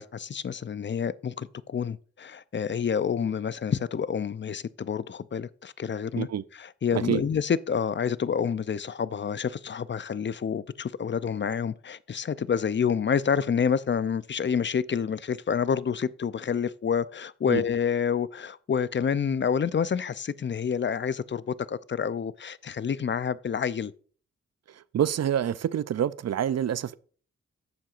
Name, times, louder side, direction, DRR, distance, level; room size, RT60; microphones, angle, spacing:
voice 1, 0.0-6.3 6.8-23.9, left 7 dB, 40° left, 0.5 m, -28 dB
voice 2, 6.9-7.2 17.5-17.6 24.7-27.0, right 9 dB, 55° right, 0.5 m, -27 dB
11.0 x 7.4 x 2.5 m
supercardioid pair, 40°, 31 cm